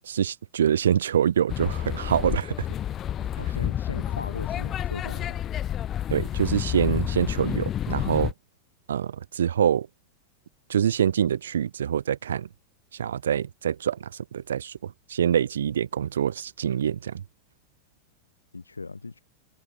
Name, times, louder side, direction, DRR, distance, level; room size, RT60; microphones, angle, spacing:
voice 1, 0.0-2.7 6.1-8.3 8.9-9.9 10.7-12.5 12.9-17.2, right 9 dB, 65° right, 1.2 m, -25 dB
sound 1, 1.5-8.3, left 11 dB, 30° left, 0.7 m, -29 dB
voice 2, 3.4-5.4 18.5-19.2, left 3 dB, 80° left, 5.3 m, -38 dB
figure-of-eight pair, 90°, 0 cm